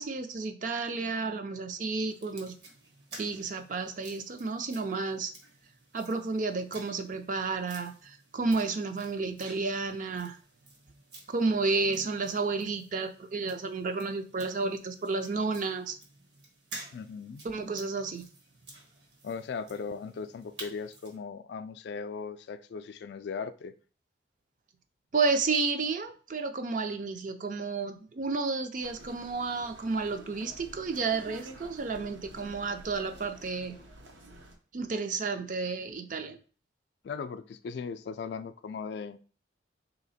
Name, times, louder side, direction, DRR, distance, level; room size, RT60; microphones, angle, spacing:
voice 1, 0.0-2.5 3.2-5.3 5.9-10.4 11.3-16.0 17.4-18.3 25.1-33.8 34.7-36.4, right 4 dB, 45° right, 0.4 m, -31 dB
sound 1, 2.0-21.2, right 2 dB, 60° right, 1.1 m, -52 dB
voice 2, 16.9-17.4 19.2-23.7 37.0-39.2, left 5 dB, 65° left, 0.3 m, -38 dB
sound 2, 28.8-34.5, right 1 dB, 80° right, 0.8 m, -50 dB
3.4 x 2.9 x 4.1 m
head